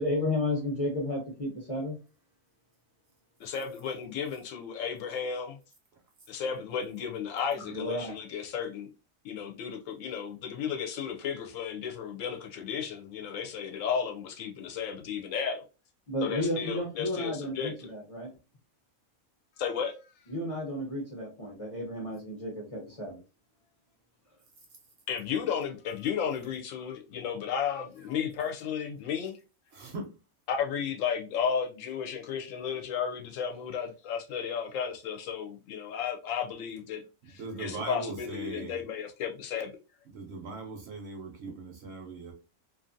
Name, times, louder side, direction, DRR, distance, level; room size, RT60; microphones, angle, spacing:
voice 1, 0.0-2.0 7.6-8.1 16.1-18.3 20.3-23.2, left 1 dB, 35° left, 0.5 m, -32 dB
voice 2, 3.4-5.6 6.3-8.9 9.2-15.7 16.2-17.9 19.6-20.1 25.1-29.4 30.5-39.7, left 7 dB, 75° left, 0.9 m, -34 dB
voice 3, 29.8-30.1 37.4-38.8 40.1-42.3, right 3 dB, 60° right, 0.8 m, -39 dB
2.5 x 2.4 x 2.5 m
omnidirectional pair, 1.4 m